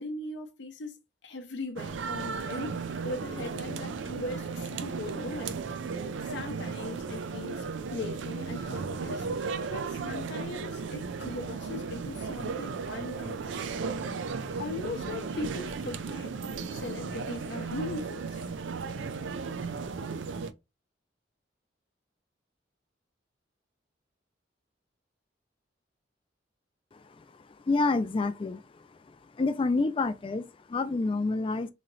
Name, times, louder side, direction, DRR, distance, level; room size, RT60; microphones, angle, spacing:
voice 1, 0.0-5.6 6.2-13.8 14.6-16.3 16.7-18.4, left 3 dB, 70° left, 0.6 m, -39 dB
sound 1, 1.8-20.5, right 5 dB, 85° right, 0.4 m, -35 dB
voice 2, 27.7-28.6 29.4-31.7, left 3 dB, 30° left, 0.3 m, -27 dB
3.1 x 2.8 x 3.8 m
head